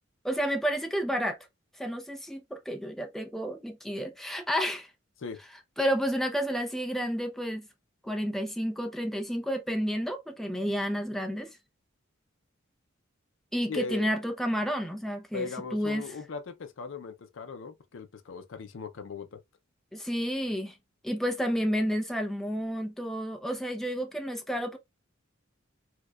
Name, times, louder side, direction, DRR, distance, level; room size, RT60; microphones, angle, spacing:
voice 1, 0.2-1.4 1.8-4.9 5.8-7.7 8.0-11.6 13.5-16.1 19.9-20.8 21.0-24.8, equal, ahead, 0.5 m, -30 dB
voice 2, 13.7-14.1 15.3-19.4, left 5 dB, 65° left, 0.5 m, -38 dB
4.5 x 2.2 x 2.3 m
head